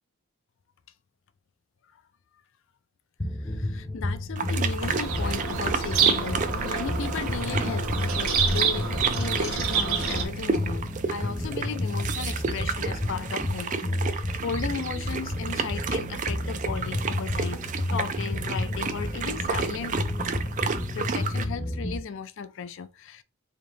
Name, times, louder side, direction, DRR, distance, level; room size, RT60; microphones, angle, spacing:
sound 1, 3.2-22.0, left 1 dB, 15° left, 0.6 m, -31 dB
voice 1, 3.4-13.8 14.4-17.6 17.9-20.0 20.9-23.2, left 6 dB, 55° left, 0.4 m, -35 dB
sound 2, 4.4-21.5, right 5 dB, 35° right, 0.4 m, -32 dB
Bird vocalization bird call bird song, 4.8-10.2, right 6 dB, 70° right, 0.8 m, -28 dB
3.5 x 2.7 x 3.9 m
head